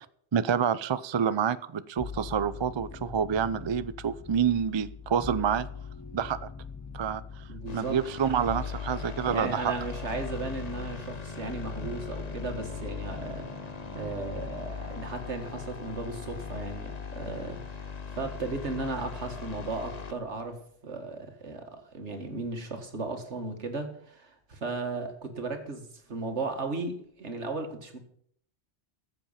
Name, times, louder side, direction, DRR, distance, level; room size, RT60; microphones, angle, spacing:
voice 1, 0.3-5.7 6.1-6.5 6.9-7.4 7.7-9.8, right 7 dB, 40° right, 15 dB, 0.4 m, -28 dB
sound 1, 2.0-19.4 19.7-20.5, left 5 dB, 25° left, 0.4 m, -43 dB
voice 2, 7.5-8.0 9.2-13.5 13.9-28.0, right 3 dB, 85° right, 5 dB, 2.2 m, -36 dB
sound 2, 7.7-20.1, left 5 dB, 40° left, 1.0 m, -40 dB
14.0 x 7.7 x 5.7 m, 0.66 s
omnidirectional pair, 1.1 m